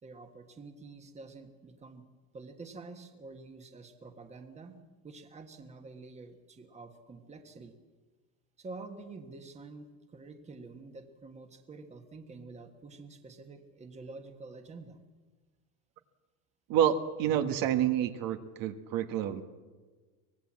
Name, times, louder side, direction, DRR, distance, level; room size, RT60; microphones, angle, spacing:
voice 1, 0.0-2.0 2.3-4.7 5.0-7.8 8.6-15.0, right 3 dB, 15° right, 6 dB, 1.5 m, -48 dB
voice 2, 16.7-19.4, right 10 dB, 55° right, 7 dB, 1.6 m, -28 dB
24.5 x 18.5 x 7.5 m, 1.4 s
cardioid pair, 155°, 40 cm